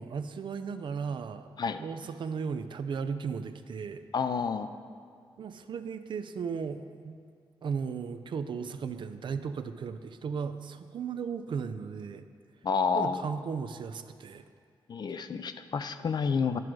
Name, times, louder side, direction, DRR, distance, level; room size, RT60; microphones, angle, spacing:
voice 1, 0.0-1.5 1.8-4.0 5.4-7.2 7.6-12.3 12.9-14.5, right 6 dB, 65° right, 10 dB, 0.5 m, -36 dB
voice 2, 4.1-4.7 12.6-13.2 14.9-16.6, left 5 dB, 50° left, 10 dB, 0.5 m, -29 dB
11.0 x 6.1 x 4.7 m, 2.2 s
cardioid pair, 85°, 9 cm